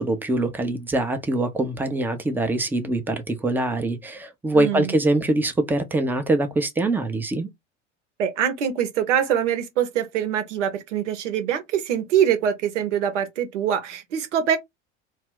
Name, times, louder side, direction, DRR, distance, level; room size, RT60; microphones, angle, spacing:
voice 1, 0.0-7.5, right 2 dB, 5° right, 0.4 m, -23 dB
voice 2, 4.5-4.9 8.2-14.6, right 9 dB, 70° right, 0.8 m, -24 dB
2.3 x 2.0 x 3.5 m
figure-of-eight pair, 75°, 37 cm